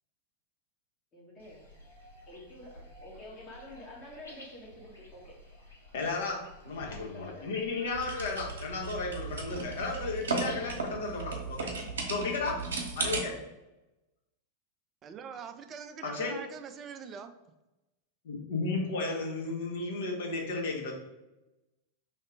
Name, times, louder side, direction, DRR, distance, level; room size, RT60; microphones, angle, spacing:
voice 1, 1.1-1.6 2.3-5.4 6.9-7.5, left 1 dB, 30° left, -3 dB, 1.2 m, -48 dB
sound 1, 1.4-10.9, left 1 dB, 80° left, 1.4 m, -52 dB
voice 2, 5.9-6.4 6.6-11.7 12.1-12.5 12.9-13.3 16.0-16.4 18.2-20.9, left 3 dB, 55° left, 0 dB, 1.0 m, -34 dB
sound 2, 7.9-13.2, right 3 dB, 65° right, 0.8 m, -35 dB
voice 3, 15.0-17.3, right 6 dB, 30° right, 8 dB, 0.4 m, -43 dB
3.1 x 2.8 x 4.4 m, 0.97 s
figure-of-eight pair, 90°, 0 cm